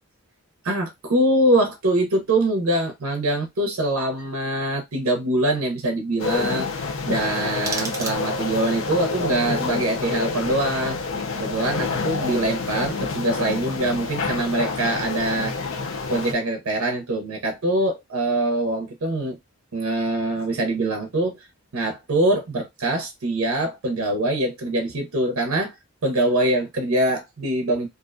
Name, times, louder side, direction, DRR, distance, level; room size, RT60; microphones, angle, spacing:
voice 1, 0.6-11.0 11.3-15.5 16.1-19.4 19.7-21.5 21.7-25.7 26.0-27.9, right 1 dB, 70° right, 0.6 m, -23 dB
sound 1, 6.2-16.3, left 4 dB, 60° left, 0.5 m, -28 dB
sound 2, 7.5-8.7, right 3 dB, 15° right, 0.4 m, -34 dB
2.5 x 2.1 x 2.4 m
head